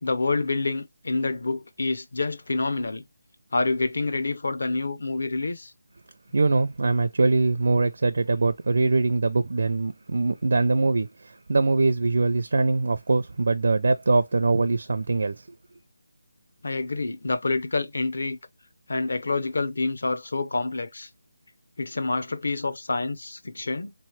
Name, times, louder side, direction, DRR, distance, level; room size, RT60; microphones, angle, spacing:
voice 1, 0.0-3.0 3.5-5.7 16.6-18.4 18.9-21.1 21.8-23.9, left 3 dB, 55° left, 0.7 m, -27 dB
voice 2, 6.3-15.4, right 3 dB, 50° right, 0.4 m, -23 dB
3.8 x 3.1 x 3.1 m
figure-of-eight pair, 180°, 0 cm